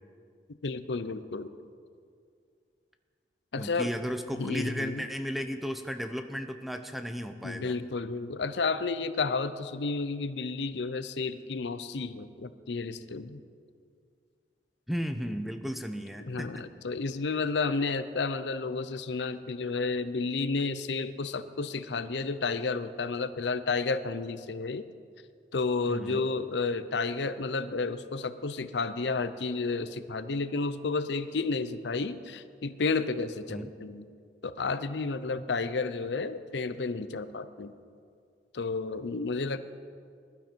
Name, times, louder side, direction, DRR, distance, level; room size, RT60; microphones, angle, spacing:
voice 1, 0.6-1.5 3.5-3.9 4.4-5.0 7.4-13.4 16.2-24.8 25.5-34.1 34.4-37.7 38.5-39.6, left 4 dB, 85° left, 12 dB, 0.6 m, -31 dB
voice 2, 3.6-7.7 14.9-16.7 25.9-26.3 33.5-33.7, equal, ahead, 7 dB, 0.7 m, -34 dB
20.5 x 12.0 x 4.5 m, 2.3 s
head